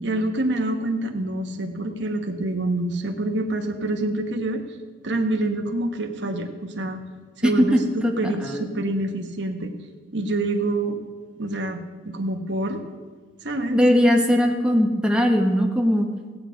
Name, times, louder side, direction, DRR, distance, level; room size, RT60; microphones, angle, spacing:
voice 1, 0.0-4.6 5.0-7.0 7.4-9.7 10.1-11.0 11.4-12.8 13.4-13.8, right 2 dB, 65° right, 5 dB, 1.2 m, -26 dB
voice 2, 7.4-8.1 8.4-8.7 13.7-16.1, equal, 5° right, 2 dB, 1.1 m, -19 dB
16.5 x 8.5 x 5.2 m, 1.4 s
head